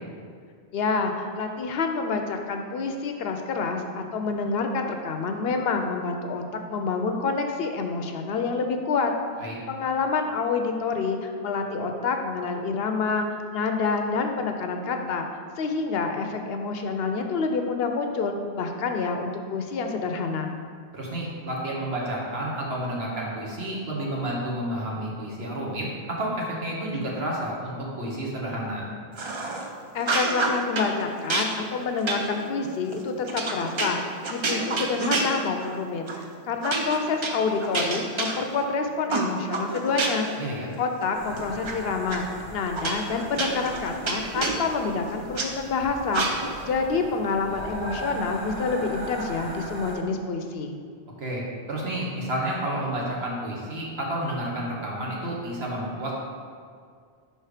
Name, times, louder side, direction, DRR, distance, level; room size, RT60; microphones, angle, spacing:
voice 1, 0.7-9.1 9.7-15.3 15.6-20.5 29.9-36.1 36.5-40.3 40.8-46.3 46.6-50.8, left 4 dB, 70° left, 5 dB, 0.8 m, -27 dB
voice 2, 20.9-28.8 40.4-40.7 51.2-51.4 51.7-56.2, right 1 dB, 70° right, -3 dB, 1.5 m, -30 dB
sound 1, 29.2-29.7 30.0-30.9 31.3-35.8 36.1-36.3 36.6-38.7 39.1-40.4 40.7-41.7 42.1-42.2 42.8-45.5 46.1-46.7, right 3 dB, 40° right, 0.4 m, -29 dB
sound 2, 41.1-50.0, right 1 dB, 85° right, 1.4 m, -39 dB
5.3 x 4.4 x 4.9 m, 2.1 s
omnidirectional pair, 1.1 m